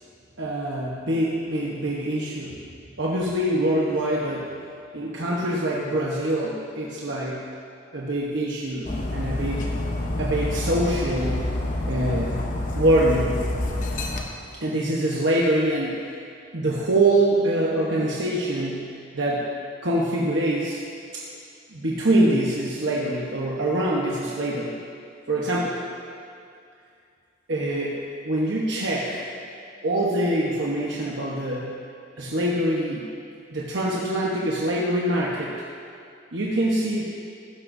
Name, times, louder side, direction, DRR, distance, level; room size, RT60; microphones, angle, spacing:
voice 1, 0.4-2.6 3.0-4.5 4.9-7.4 7.9-9.7 10.2-11.4 11.8-12.4 12.8-13.4 14.5-16.1 16.5-19.4 19.8-20.8 21.1-21.2 21.7-24.7 25.3-25.8 27.5-28.0 28.2-29.2 29.8-31.7 32.2-33.1 33.5-35.5 36.3-37.0, right 1 dB, 60° right, -5 dB, 1.1 m, -24 dB
Dog, 8.8-14.2, left 1 dB, 40° left, 1.0 m, -28 dB
15.5 x 12.5 x 2.7 m, 2.4 s
head